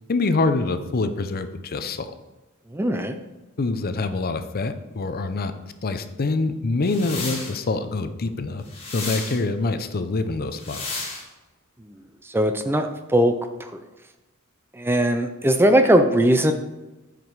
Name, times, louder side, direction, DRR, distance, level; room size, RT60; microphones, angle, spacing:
voice 1, 0.1-2.1 3.6-5.5 5.8-8.6 8.9-10.8, left 3 dB, 45° left, 10 dB, 0.6 m, -25 dB
voice 2, 2.7-3.1 12.3-13.7 14.8-16.5, right 1 dB, 10° right, 8 dB, 0.4 m, -19 dB
sound 1, 6.8-7.6 8.7-9.4 10.5-11.2, left 3 dB, 25° left, 1.9 m, -32 dB
9.4 x 5.1 x 4.7 m, 1.1 s
head